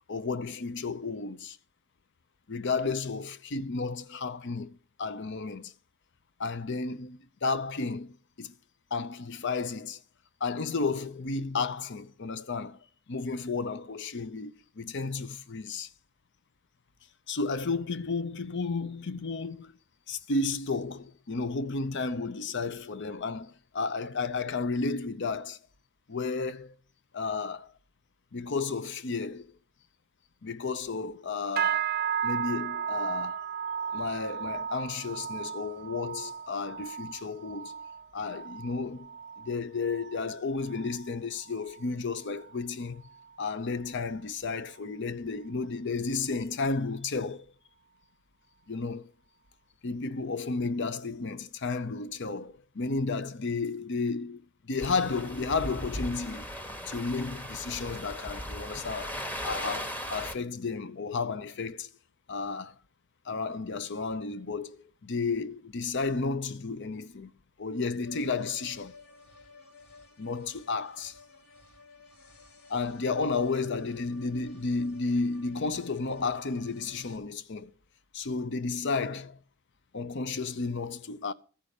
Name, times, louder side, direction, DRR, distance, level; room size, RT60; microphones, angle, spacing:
voice 1, 0.1-1.6 2.5-5.7 6.4-8.5 8.9-10.0 10.4-12.8 13.1-15.9 17.3-19.7 20.1-25.6 26.1-26.7 27.1-27.7 28.3-29.5 30.4-31.9 32.2-33.5 33.9-37.8 38.1-39.1 39.4-43.0 43.4-47.5 48.7-49.1 49.8-56.5 56.9-61.9 62.3-62.7 63.3-67.3 67.6-68.9 70.2-71.2 72.7-77.7 78.1-79.4 79.9-81.3, left 4 dB, 55° left, 0.7 m, -32 dB
sound 1, 31.6-41.1 41.4-41.8 42.2-42.6 43.1-43.2, right 8 dB, 45° right, 0.5 m, -35 dB
sound 2, 54.8-60.4, equal, 10° left, 1.0 m, -38 dB
sound 3, 68.0-77.2, left 3 dB, 90° left, 2.2 m, -54 dB
14.0 x 5.7 x 6.6 m
head